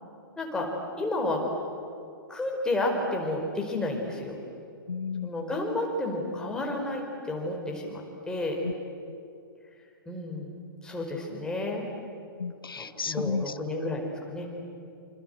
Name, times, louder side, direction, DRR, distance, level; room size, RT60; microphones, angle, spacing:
voice 1, 0.4-0.7 1.0-1.4 2.3-4.4 5.2-8.6 10.0-10.5 10.8-11.8 12.7-14.5, left 2 dB, 5° left, 0 dB, 4.9 m, -31 dB
voice 2, 4.9-5.3 8.6-8.7 12.4-13.5, left 5 dB, 75° left, 16 dB, 0.7 m, -32 dB
27.0 x 27.0 x 8.1 m, 2.4 s
figure-of-eight pair, 115°, 12 cm